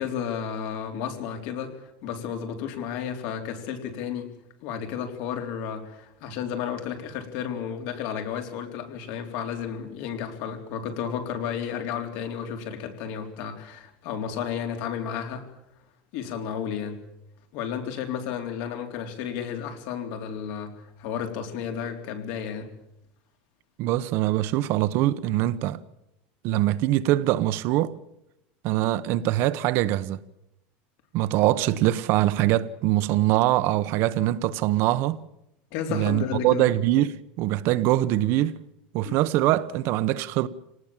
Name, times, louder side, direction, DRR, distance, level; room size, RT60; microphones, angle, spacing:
voice 1, 0.0-4.3 4.6-15.5 16.1-17.0 17.5-22.7 35.7-36.6 39.1-39.2, left 8 dB, 60° left, 4.0 m, -32 dB
voice 2, 23.8-25.8 26.4-27.9 28.6-30.2 31.1-35.2 35.9-38.6 38.9-40.5, right 15 dB, 50° right, 1.0 m, -23 dB
27.0 x 19.0 x 7.4 m
cardioid pair, 160°, 5 cm